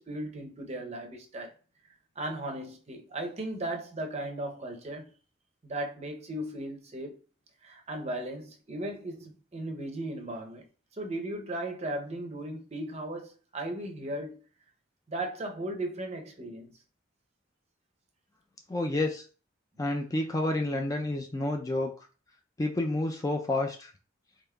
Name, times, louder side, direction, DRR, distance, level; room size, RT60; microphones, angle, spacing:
voice 1, 0.0-1.5 2.2-5.1 5.6-7.2 7.6-10.6 11.0-14.4 15.1-16.7, right 1 dB, 35° right, 0.6 m, -36 dB
voice 2, 18.7-19.2 19.8-22.1 22.6-23.9, left 2 dB, 20° left, 0.3 m, -29 dB
3.7 x 3.6 x 2.2 m
head